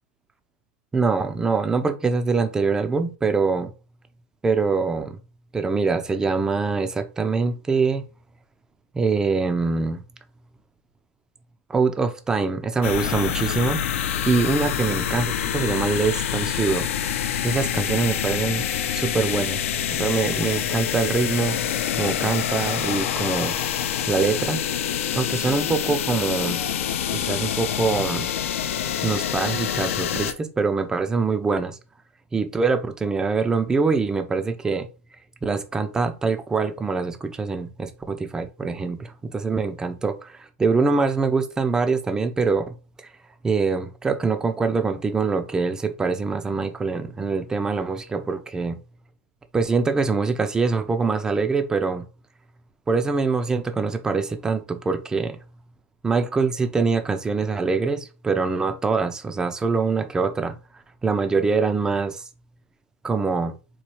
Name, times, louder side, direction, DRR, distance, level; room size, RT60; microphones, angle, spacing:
voice 1, 0.9-3.7 4.4-5.2 5.5-8.0 8.9-10.0 11.7-13.8 14.3-16.9 17.4-18.7 18.9-19.6 19.9-21.6 22.0-23.5 24.1-24.6 25.2-26.6 27.1-28.3 29.0-31.8 32.3-34.9 35.4-42.7 43.4-48.8 49.5-52.0 52.9-55.4 56.0-60.6 61.0-62.2 63.0-63.5, right 4 dB, 10° right, 0.4 m, -24 dB
sound 1, 12.8-30.3, left 9 dB, 75° left, 0.5 m, -26 dB
4.2 x 2.3 x 3.0 m
supercardioid pair, 145°, 7 cm